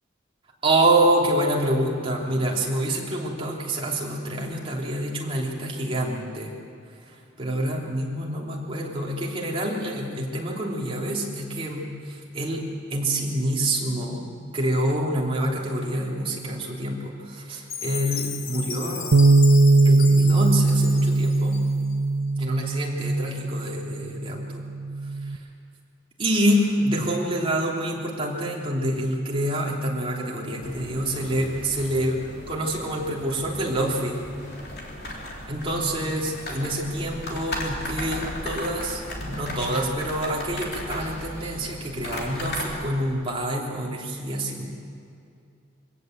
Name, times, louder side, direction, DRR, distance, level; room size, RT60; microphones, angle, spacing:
voice 1, 0.6-6.5 7.1-14.3 14.5-19.2 19.8-21.7 22.4-24.6 26.2-34.2 35.5-39.0 39.3-44.6, right 1 dB, 25° right, -3 dB, 3.2 m, -27 dB
Chime, 17.7-21.9, left 7 dB, 90° left, 2.1 m, -35 dB
Bass guitar, 19.1-25.4, right 2 dB, 90° right, 0.7 m, -20 dB
sound 1, 30.6-42.7, left 1 dB, 50° left, 3.6 m, -36 dB
24.0 x 17.5 x 8.0 m, 2.4 s
head